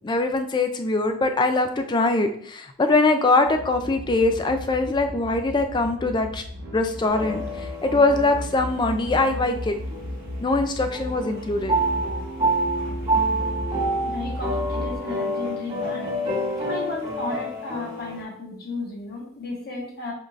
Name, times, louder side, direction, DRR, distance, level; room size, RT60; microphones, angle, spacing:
voice 1, 0.0-6.4 6.7-9.8 10.4-11.7, left 2 dB, 20° left, 7 dB, 0.3 m, -22 dB
sound 1, 3.4-15.0, equal, 40° right, 1.0 m, -35 dB
sound 2, 7.1-10.6 10.9-18.2, right 1 dB, 20° right, 1.7 m, -28 dB
voice 2, 14.0-16.2 16.6-20.1, left 2 dB, 45° left, -2 dB, 1.1 m, -33 dB
5.2 x 3.8 x 2.4 m, 0.64 s
head